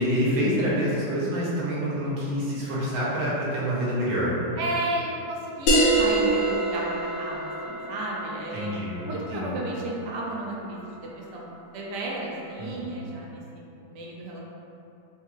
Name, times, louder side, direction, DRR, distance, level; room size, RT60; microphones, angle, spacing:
voice 1, 0.0-4.3 8.5-9.0 9.3-9.5 12.6-12.8, equal, 85° right, -7 dB, 1.7 m, -27 dB
voice 2, 4.6-8.7 9.1-14.4, right 2 dB, 70° right, -3 dB, 1.1 m, -33 dB
sound 1, 5.7-10.7, right 1 dB, 70° left, 1.2 m, -26 dB
4.4 x 3.0 x 2.3 m, 2.8 s
omnidirectional pair, 2.2 m